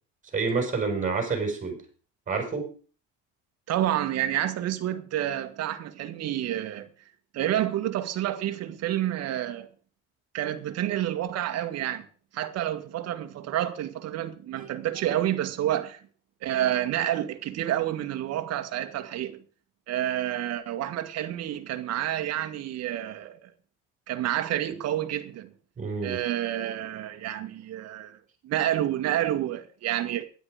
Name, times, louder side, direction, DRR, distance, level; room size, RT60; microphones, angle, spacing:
voice 1, 0.3-1.8 2.3-2.7 14.6-14.7 25.8-26.2, right 4 dB, 25° right, 5.7 m, -28 dB
voice 2, 3.7-6.9 7.3-9.7 10.3-12.1 12.3-16.0 16.4-19.4 19.9-23.4 24.1-25.5 26.0-28.2 28.4-30.2, right 12 dB, 55° right, 1.9 m, -29 dB
13.0 x 11.0 x 5.0 m
cardioid pair, 120°, 31 cm